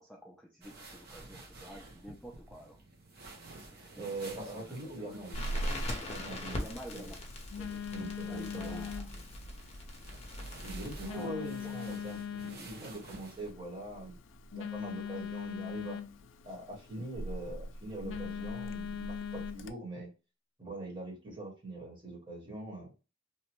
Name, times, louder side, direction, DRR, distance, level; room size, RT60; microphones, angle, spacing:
voice 1, 0.0-2.8 3.7-5.2 6.5-7.2 7.5-7.9 8.2-9.1 10.9-11.7, equal, ahead, -2 dB, 0.3 m, -50 dB
sound 1, 0.6-13.5, right 2 dB, 55° right, 0.8 m, -52 dB
voice 2, 4.0-5.4 6.1-6.6 6.9-7.1 7.9-9.2 10.6-14.2 14.5-16.0 16.4-20.1 20.6-22.9, right 2 dB, 25° right, -3 dB, 1.3 m, -42 dB
Telephone, 5.3-19.7, left 3 dB, 80° left, 0.3 m, -41 dB
Crackle, 5.3-11.1, left 1 dB, 35° left, 0.7 m, -42 dB
2.8 x 2.2 x 2.9 m, 0.30 s
head